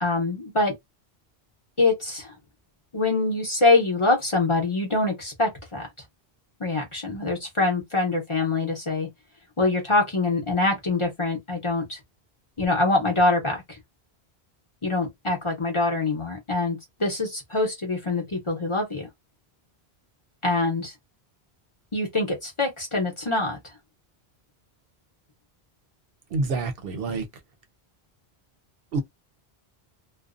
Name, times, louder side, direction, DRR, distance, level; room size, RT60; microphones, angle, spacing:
voice 1, 0.0-0.7 1.8-2.3 2.9-5.9 6.6-9.1 9.6-12.0 12.6-13.8 14.8-19.1 20.4-20.9 21.9-23.6, left 2 dB, 30° left, 0.7 m, -24 dB
voice 2, 26.3-27.3 28.9-29.0, right 3 dB, 70° right, 0.7 m, -27 dB
2.5 x 2.0 x 2.4 m
omnidirectional pair, 1.1 m